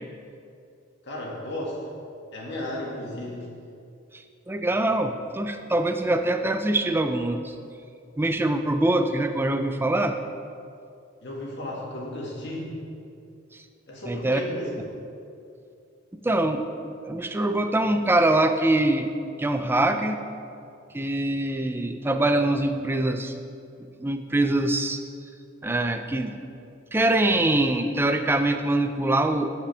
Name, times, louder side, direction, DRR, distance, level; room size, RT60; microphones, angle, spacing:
voice 1, 1.0-1.9 2.3-3.5 11.2-12.7 13.9-14.8, left 1 dB, 60° left, -3 dB, 1.9 m, -34 dB
voice 2, 4.1-7.5 8.2-10.2 14.1-14.4 16.1-19.1 19.4-20.2 20.9-23.3 24.0-25.0 25.6-26.4 26.9-29.5, right 1 dB, 10° right, 7 dB, 0.4 m, -24 dB
14.5 x 5.2 x 3.3 m, 2.5 s
head